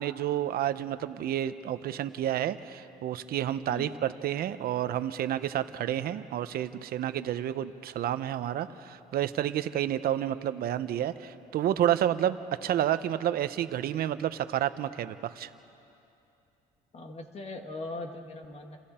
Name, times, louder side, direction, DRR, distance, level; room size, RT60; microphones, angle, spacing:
voice 1, 0.0-15.5, right 11 dB, 65° right, 12 dB, 0.9 m, -30 dB
voice 2, 16.9-18.8, left 2 dB, 40° left, 4 dB, 2.1 m, -40 dB
29.5 x 27.5 x 4.4 m, 2.8 s
cardioid pair, 110°, 17 cm